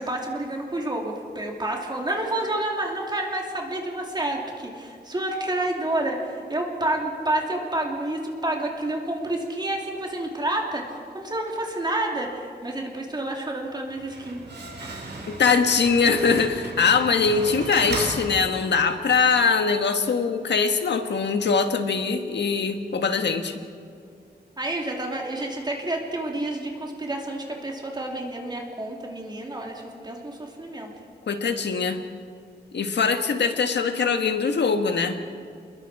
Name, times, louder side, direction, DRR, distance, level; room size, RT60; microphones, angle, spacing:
voice 1, 0.0-10.9 11.1-14.4 14.7-15.0 24.6-30.9, right 1 dB, 25° right, 0 dB, 2.8 m, -29 dB
Slam, 13.8-19.0, right 2 dB, 85° right, 5.0 m, -36 dB
voice 2, 15.3-23.6 31.3-32.0 32.7-35.2, left 5 dB, 80° left, 6 dB, 1.6 m, -22 dB
29.0 x 21.5 x 4.9 m, 2.3 s
wide cardioid pair, 155°, 18 cm